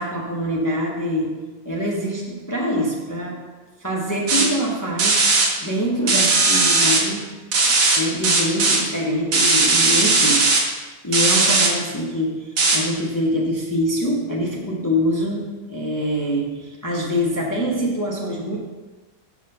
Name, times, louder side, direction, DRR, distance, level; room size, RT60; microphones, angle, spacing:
voice 1, 0.0-3.4 3.8-7.4 8.0-10.7 11.0-18.6, equal, 20° left, -2 dB, 0.4 m, -25 dB
sound 1, 4.3-4.5 5.0-5.5 6.1-7.0 7.5-8.0 8.2-8.8 9.3-10.6 11.1-11.7 12.6-12.8, right 3 dB, 70° right, 2.1 m, -17 dB
7.5 x 6.0 x 5.4 m, 1.3 s
omnidirectional pair, 2.2 m